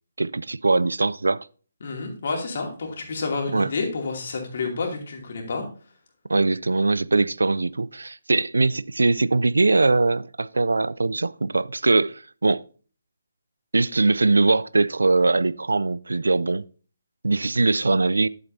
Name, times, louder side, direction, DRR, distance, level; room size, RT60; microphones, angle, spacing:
voice 1, 0.2-1.5 3.5-3.7 6.3-12.6 13.7-16.6 17.2-18.3, right 3 dB, 70° right, 0.4 m, -21 dB
voice 2, 1.8-5.6, left 4 dB, 50° left, 2.5 m, -29 dB
10.5 x 8.0 x 2.7 m
figure-of-eight pair, 145°, 0 cm